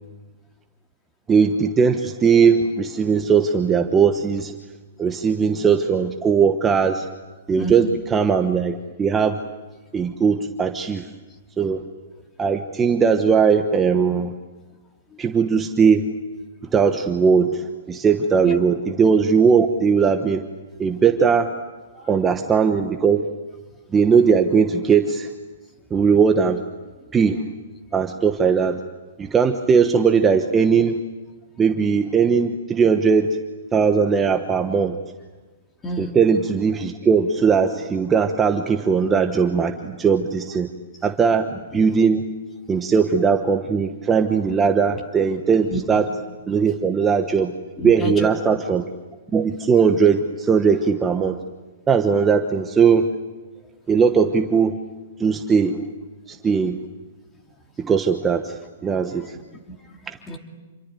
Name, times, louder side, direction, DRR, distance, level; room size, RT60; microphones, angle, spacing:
voice 1, 1.3-4.6 5.0-7.0 7.5-9.4 9.9-11.1 11.6-11.8 12.4-14.3 15.2-16.1 16.7-20.4 20.8-21.5 22.1-23.2 23.9-25.3 25.9-26.6 27.1-27.4 27.9-28.8 29.2-31.0 31.6-33.4 33.7-35.0 36.0-40.7 41.0-42.2 42.7-46.1 46.5-47.5 47.8-48.9 49.3-51.4 51.9-53.1 53.9-54.8 55.2-55.9 56.3-56.8 57.8-59.4 60.1-60.2, right 6 dB, 15° right, 5 dB, 1.1 m, -19 dB
voice 2, 7.6-7.9 18.4-18.6 21.9-22.1 35.8-36.1 45.7-45.8 47.8-48.6 59.1-60.4, right 1 dB, 15° left, 3 dB, 2.8 m, -31 dB
28.0 x 22.5 x 9.2 m, 1.2 s
hypercardioid pair, 155°, 0 cm